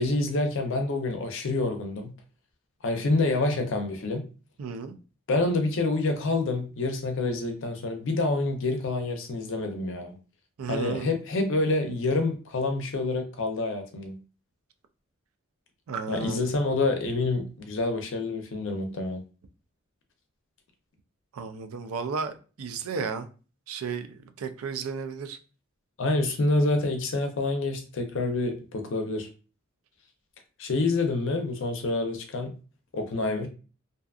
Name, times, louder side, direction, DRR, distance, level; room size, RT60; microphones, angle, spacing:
voice 1, 0.0-2.1 2.8-4.2 5.3-10.2 10.7-14.2 16.1-19.2 26.0-29.3 30.6-32.5 32.9-33.5, left 2 dB, 65° left, 0.5 m, -27 dB
voice 2, 4.6-5.0 10.6-11.1 15.9-16.4 21.3-23.3 23.7-25.4, right 5 dB, 85° right, 0.4 m, -33 dB
2.6 x 2.3 x 2.3 m
head